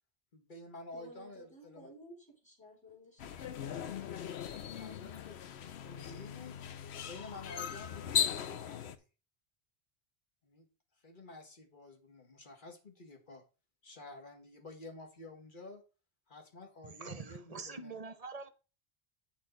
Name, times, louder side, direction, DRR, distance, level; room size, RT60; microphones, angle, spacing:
voice 1, 0.3-1.9 3.5-3.9 4.6-5.4 5.8-6.6 7.1-8.9 10.4-10.7 11.0-13.4 13.8-15.8 16.3-17.9, left 2 dB, 50° left, 1.8 m, -51 dB
voice 2, 0.9-2.2 2.4-4.0, equal, 5° left, 4.2 m, -55 dB
sound 1, 3.2-9.0, left 8 dB, 75° left, 1.0 m, -38 dB
voice 3, 16.8-18.5, right 4 dB, 40° right, 0.7 m, -44 dB
9.1 x 6.5 x 4.0 m
omnidirectional pair, 1.1 m